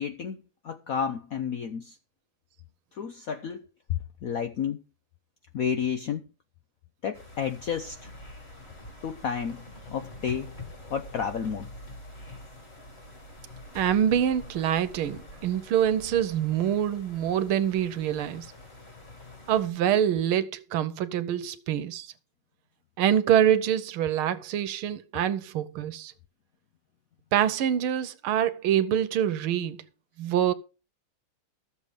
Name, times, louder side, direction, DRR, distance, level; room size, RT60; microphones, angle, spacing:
voice 1, 0.0-2.0 2.9-4.8 5.5-6.2 7.0-8.1 9.0-9.7 9.9-10.5 10.9-11.7, left 7 dB, 75° left, 0.8 m, -31 dB
sound 1, 7.1-19.7, left 1 dB, 30° left, 2.5 m, -46 dB
voice 2, 13.8-18.5 19.5-22.1 23.0-26.1 27.3-29.8 30.2-30.5, right 10 dB, 85° right, 1.7 m, -25 dB
13.5 x 7.1 x 5.1 m
omnidirectional pair, 2.3 m